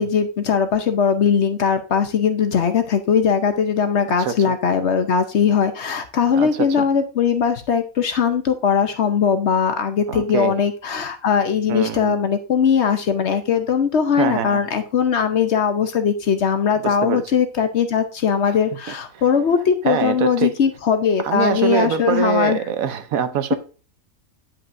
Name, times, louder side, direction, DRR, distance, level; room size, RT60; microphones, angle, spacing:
voice 1, 0.0-22.6, left 7 dB, 55° left, 1.0 m, -20 dB
voice 2, 6.4-6.9 10.1-10.6 11.7-12.2 14.2-14.6 16.8-17.2 18.4-18.6 19.9-20.6 21.2-23.6, right 7 dB, 75° right, 1.2 m, -24 dB
9.5 x 5.8 x 2.6 m
omnidirectional pair, 1.5 m